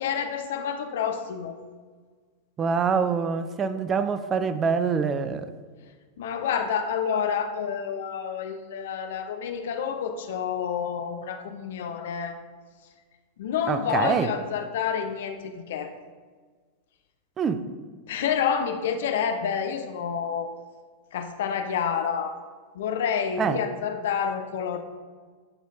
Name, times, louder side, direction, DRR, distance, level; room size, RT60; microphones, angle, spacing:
voice 1, 0.0-1.6 6.2-12.4 13.4-15.9 18.1-20.5 21.1-22.3 22.7-24.8, left 7 dB, 55° left, 7 dB, 0.7 m, -28 dB
voice 2, 2.6-5.5 13.7-14.3 17.4-17.7 23.4-23.6, right 6 dB, 25° right, 11 dB, 0.5 m, -25 dB
11.0 x 5.2 x 4.0 m, 1.5 s
figure-of-eight pair, 90°, 0 cm